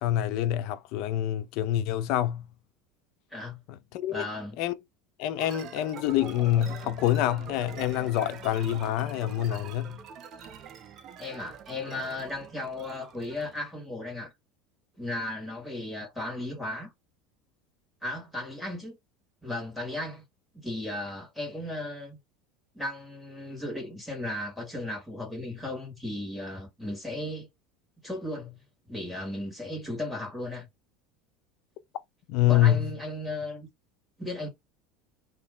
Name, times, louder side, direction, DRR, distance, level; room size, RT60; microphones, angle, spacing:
voice 1, 0.0-2.4 3.9-4.3 4.6-4.7 5.2-10.0 32.3-32.9, left 12 dB, 55° left, 0.6 m, -26 dB
voice 2, 3.3-3.6 4.1-4.6 11.2-14.3 15.0-16.9 18.0-19.0 19.4-20.2 20.5-22.2 22.7-27.5 28.0-28.6 28.9-30.7 32.5-33.7 34.2-34.5, left 1 dB, 5° left, 2.1 m, -35 dB
sound 1, 5.4-13.7, right 7 dB, 35° right, 0.7 m, -45 dB
3.0 x 2.8 x 3.7 m
supercardioid pair, 155°, 0 cm